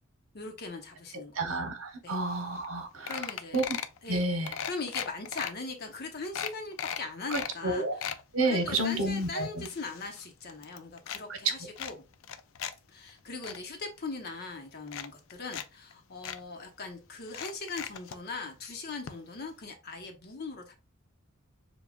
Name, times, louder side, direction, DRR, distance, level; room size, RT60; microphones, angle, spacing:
voice 1, 0.3-1.4 2.0-2.2 3.1-3.6 4.0-4.3 4.6-12.0 12.9-20.8, left 3 dB, 50° left, 0.9 m, -40 dB
voice 2, 1.3-3.1 3.5-3.6 4.1-4.5 7.6-8.0 8.3-9.7, right 2 dB, 85° right, 1.0 m, -30 dB
sound 1, 2.3-2.4 2.6-2.8 3.1-4.0 4.5-5.5 6.0-6.1 6.3-7.5 7.8-8.2 8.7-10.2 10.5-11.2 11.8-12.7 13.1-13.6 14.4-14.5 14.9-15.7 15.9-16.0 16.2-16.4 17.3-18.2 19.1-19.2 19.4-19.5, left 8 dB, 70° left, 0.4 m, -38 dB
7.0 x 2.3 x 2.3 m
head